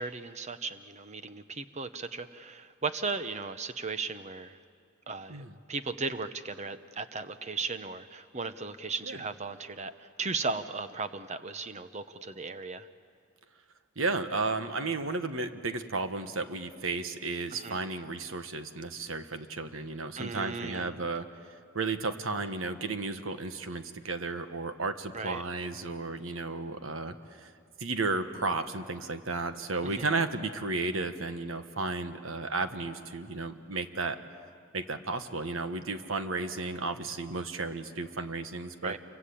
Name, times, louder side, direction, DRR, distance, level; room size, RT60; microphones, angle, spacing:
voice 1, 0.0-4.6 5.1-12.9 17.5-17.8 20.2-21.0 25.1-25.4 29.8-30.1 38.8-39.0, right 4 dB, 35° right, 11 dB, 0.9 m, -36 dB
voice 2, 14.0-21.3 21.7-27.5 27.8-34.2 34.7-38.9, right 3 dB, 85° right, 9 dB, 1.4 m, -33 dB
27.5 x 24.0 x 8.6 m, 2.2 s
head